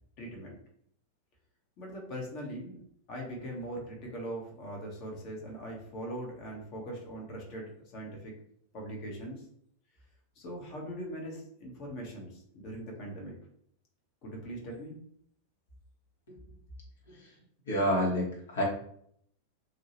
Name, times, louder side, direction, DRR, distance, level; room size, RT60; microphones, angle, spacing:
voice 1, 0.2-0.6 1.8-2.8 3.1-8.3 8.7-9.4 10.3-13.4 14.2-15.0, right 1 dB, 40° left, -1 dB, 1.1 m, -41 dB
voice 2, 17.7-18.6, equal, 65° left, -3 dB, 1.2 m, -29 dB
2.8 x 2.7 x 2.9 m, 0.66 s
figure-of-eight pair, 90°, 0 cm